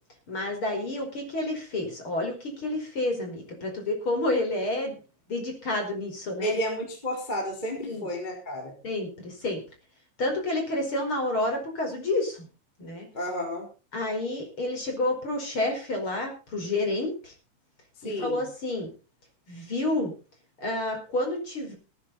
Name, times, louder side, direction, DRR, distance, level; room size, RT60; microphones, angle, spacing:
voice 1, 0.3-5.0 5.3-6.6 7.8-8.1 8.8-9.6 10.2-12.4 12.8-13.1 13.9-17.3 18.0-18.9 19.5-20.1 20.6-21.7, left 2 dB, 25° left, 3 dB, 5.4 m, -29 dB
voice 2, 6.4-8.7 13.1-13.7 18.0-18.4, equal, 10° left, 0 dB, 4.0 m, -31 dB
18.5 x 11.5 x 4.2 m, 0.34 s
omnidirectional pair, 5.5 m